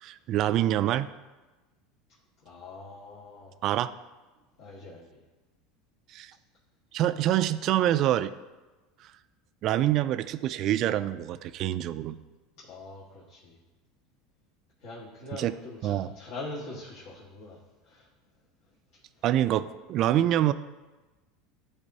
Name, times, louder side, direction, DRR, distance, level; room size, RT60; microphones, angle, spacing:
voice 1, 0.0-1.1 3.6-3.9 6.1-6.3 6.9-8.3 9.6-12.2 15.4-15.5 15.8-16.1 19.2-20.5, right 12 dB, 50° right, 13 dB, 0.3 m, -26 dB
voice 2, 2.4-3.6 4.6-5.2 12.6-13.6 14.8-18.1 18.9-19.2, left 2 dB, 70° left, -7 dB, 1.6 m, -43 dB
12.0 x 4.4 x 2.7 m, 1.2 s
supercardioid pair, 120°, 0 cm